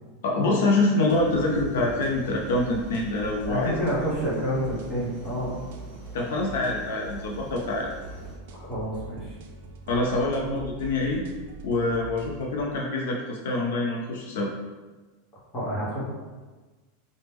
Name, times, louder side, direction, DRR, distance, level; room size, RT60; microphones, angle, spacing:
voice 1, 0.2-3.8 6.1-7.9 9.9-11.2 11.6-14.5, left 2 dB, 75° left, -1 dB, 0.4 m, -25 dB
sound 1, 1.1-8.4, right 2 dB, 25° right, 1.3 m, -47 dB
sound 2, 1.1-12.6, right 3 dB, 70° right, 0.3 m, -42 dB
voice 2, 3.5-5.7 8.5-9.3 15.5-16.0, equal, 20° left, -8 dB, 1.1 m, -29 dB
3.0 x 2.0 x 3.4 m, 1.3 s
supercardioid pair, 165°, 0 cm